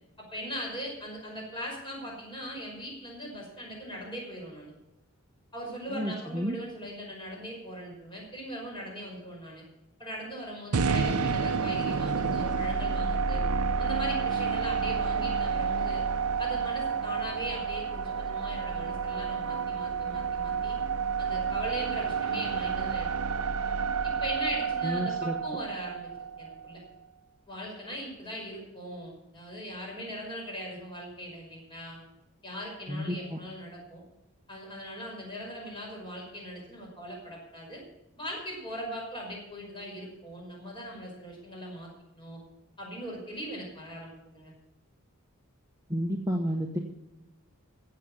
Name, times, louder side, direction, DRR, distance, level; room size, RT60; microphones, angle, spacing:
voice 1, 0.2-4.7 5.5-9.6 10.0-13.4 13.8-16.0 16.4-20.8 21.2-23.1 24.0-26.1 26.4-26.8 27.5-32.0 32.4-34.0 34.5-37.8 38.2-42.4 42.8-44.5, equal, 20° left, -1 dB, 5.6 m, -40 dB
voice 2, 5.9-6.6 24.8-25.4 32.9-33.4 45.9-46.8, equal, 15° right, 1 dB, 1.0 m, -31 dB
sound 1, 10.7-26.9, right 5 dB, 85° right, 0.7 m, -30 dB
15.5 x 7.7 x 7.3 m, 0.93 s
head